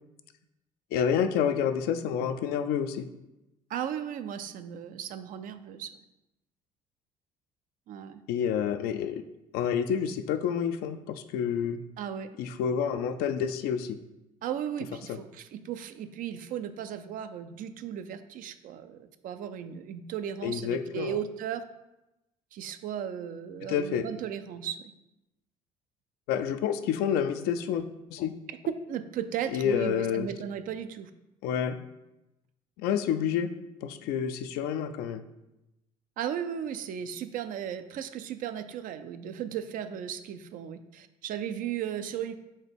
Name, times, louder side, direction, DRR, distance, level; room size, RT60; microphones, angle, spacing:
voice 1, 0.9-3.1 8.3-9.2 9.5-11.8 12.4-14.0 15.1-15.2 20.4-21.2 23.7-24.0 26.3-28.3 29.5-30.3 31.4-31.8 32.8-33.5 33.8-35.2, left 8 dB, 65° left, 10 dB, 0.4 m, -29 dB
voice 2, 3.7-5.9 7.9-8.2 12.0-12.3 14.4-21.6 22.5-24.9 28.5-31.1 36.2-42.3, right 9 dB, 55° right, 10 dB, 0.4 m, -36 dB
4.3 x 3.5 x 3.4 m, 0.94 s
hypercardioid pair, 60°, 18 cm